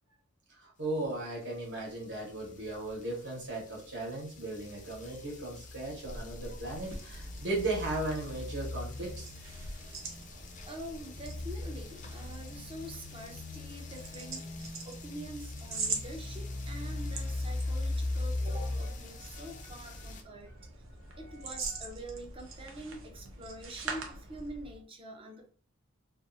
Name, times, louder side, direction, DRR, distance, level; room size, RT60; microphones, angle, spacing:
voice 1, 0.5-9.3 18.4-18.6 19.3-19.4, right 2 dB, 60° right, -4 dB, 1.1 m, -36 dB
sound 1, 1.6-20.2, left 2 dB, 40° left, 0.4 m, -40 dB
sound 2, 5.9-24.8, right 3 dB, 80° right, 0.6 m, -44 dB
voice 2, 10.7-20.6 21.2-25.5, right 1 dB, 25° right, 3 dB, 0.5 m, -45 dB
2.5 x 2.3 x 2.5 m, 0.43 s
head